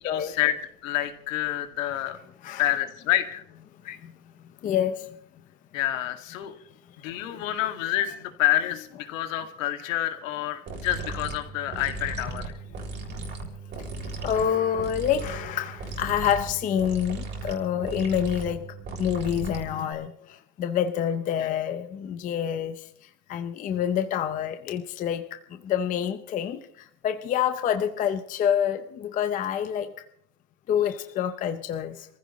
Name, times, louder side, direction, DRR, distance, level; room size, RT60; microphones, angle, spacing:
voice 1, 0.0-2.2 2.6-3.4 5.7-6.5 7.0-12.5 21.4-21.5, left 13 dB, 75° left, 6 dB, 2.3 m, -28 dB
voice 2, 4.6-5.0 7.2-7.4 14.2-18.6 19.0-20.1 20.6-22.8 23.3-26.6 27.0-29.9 30.7-32.1, left 9 dB, 20° left, 8 dB, 0.7 m, -27 dB
sound 1, 10.7-19.9, right 3 dB, 25° right, 3.6 m, -36 dB
26.5 x 15.0 x 3.1 m, 0.65 s
supercardioid pair, 160°, 40 cm